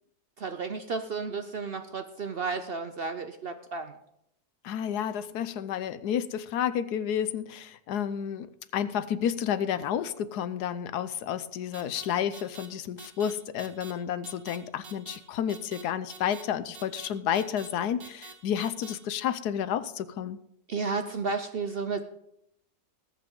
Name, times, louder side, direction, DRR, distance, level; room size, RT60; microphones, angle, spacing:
voice 1, 0.4-3.9 20.7-22.0, right 4 dB, 75° right, 8 dB, 0.5 m, -32 dB
voice 2, 4.6-8.5 8.7-20.4, left 9 dB, 70° left, 14 dB, 1.2 m, -31 dB
sound 1, 11.7-12.1 12.3-12.7 13.0-13.3 13.6-13.9 14.2-14.6 14.8-15.2 15.5-15.8 16.1-16.4 16.7-17.1 17.4-17.7 18.0-18.3 18.6-18.9, right 5 dB, 90° right, 2.0 m, -45 dB
19.0 x 8.5 x 3.8 m, 0.76 s
omnidirectional pair, 1.9 m